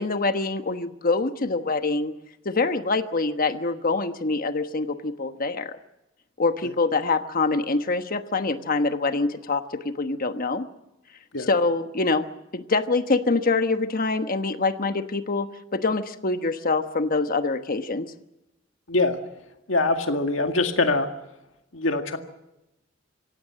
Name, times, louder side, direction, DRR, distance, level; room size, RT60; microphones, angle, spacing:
voice 1, 0.0-2.1 2.4-5.8 6.4-10.7 11.5-12.2 12.5-15.5 15.7-18.1, left 3 dB, 45° left, 8 dB, 1.2 m, -25 dB
voice 2, 18.9-19.2 19.7-21.1 21.7-22.2, left 2 dB, 85° left, 5 dB, 2.0 m, -23 dB
26.0 x 16.5 x 7.6 m, 0.91 s
head